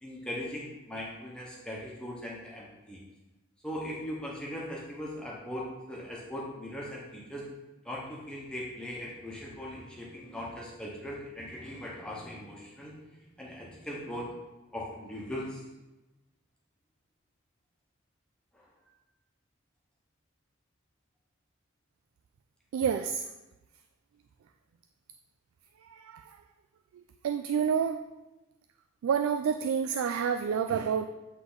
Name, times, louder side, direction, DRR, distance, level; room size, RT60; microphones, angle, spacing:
voice 1, 0.0-3.0 3.6-7.5 7.8-14.3 14.7-15.6 18.5-18.6, equal, 5° left, -5 dB, 0.9 m, -39 dB
voice 2, 22.7-23.3 25.8-26.2 27.2-28.0 29.0-31.1, right 7 dB, 85° right, 9 dB, 0.3 m, -28 dB
8.0 x 3.3 x 3.9 m, 1.0 s
head